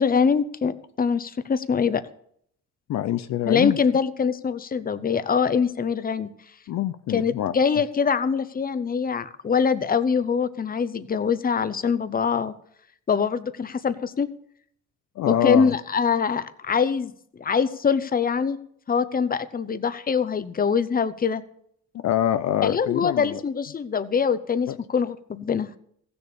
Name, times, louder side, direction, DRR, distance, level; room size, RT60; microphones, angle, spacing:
voice 1, 0.0-2.0 3.5-6.3 7.1-12.5 13.1-14.3 15.2-17.1 17.4-18.6 18.9-21.4 22.6-25.8, left 6 dB, 30° left, 13 dB, 0.8 m, -23 dB
voice 2, 2.9-3.8 6.7-7.5 15.2-15.8 21.9-23.4 24.7-24.8, left 12 dB, 65° left, 11 dB, 0.6 m, -25 dB
15.0 x 7.0 x 6.8 m, 0.67 s
cardioid pair, 90°, 30 cm